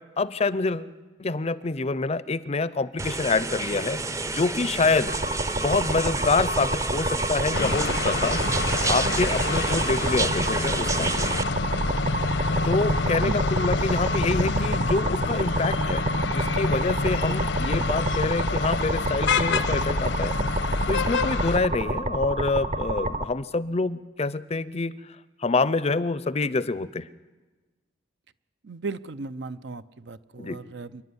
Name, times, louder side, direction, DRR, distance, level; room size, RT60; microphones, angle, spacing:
voice 1, 0.2-0.9 1.2-4.0 4.3-5.1 5.5-8.4 8.9-11.3 12.6-20.4 20.9-24.9 25.4-27.1 30.4-30.6, left 3 dB, 35° left, 17 dB, 0.6 m, -26 dB
sound 1, 3.0-11.4, right 3 dB, 15° right, 0.6 m, -30 dB
sound 2, 5.1-23.2, right 1 dB, 40° right, 0.8 m, -29 dB
sound 3, 7.5-21.6, left 3 dB, 80° left, 0.9 m, -27 dB
voice 2, 28.6-31.0, right 4 dB, 70° right, 14 dB, 0.6 m, -36 dB
27.0 x 11.0 x 9.6 m, 1.3 s
head